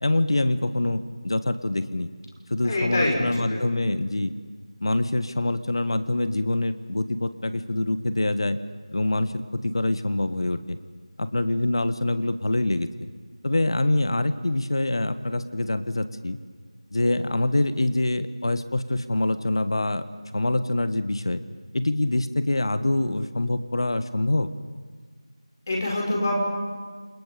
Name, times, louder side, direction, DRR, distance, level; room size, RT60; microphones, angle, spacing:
voice 1, 0.0-2.1 2.5-4.3 4.8-8.6 8.9-10.8 11.2-12.9 13.4-16.4 16.9-20.0 20.3-21.4 21.7-24.5, left 2 dB, 50° left, 12 dB, 1.4 m, -25 dB
voice 2, 2.6-3.6 25.7-26.5, left 1 dB, 30° left, -1 dB, 5.7 m, -25 dB
28.0 x 28.0 x 5.2 m, 1.6 s
figure-of-eight pair, 170°, 3 cm